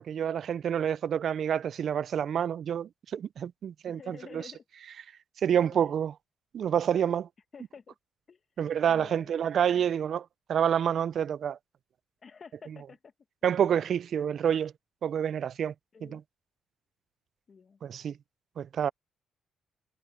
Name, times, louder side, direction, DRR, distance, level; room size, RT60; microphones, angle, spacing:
voice 1, 0.0-4.4 5.4-6.1 6.5-7.3 8.6-11.6 13.4-14.7 15.0-15.7 16.0-16.2 17.8-18.1 18.6-18.9, right 8 dB, 60° right, 0.3 m, -28 dB
voice 2, 3.9-4.6 5.7-6.0 7.5-7.9 8.3-8.4 8.9-9.5 12.2-13.1 15.9-16.2 17.5-17.8, left 5 dB, 40° left, 1.5 m, -50 dB
cardioid pair, 90°, 0 cm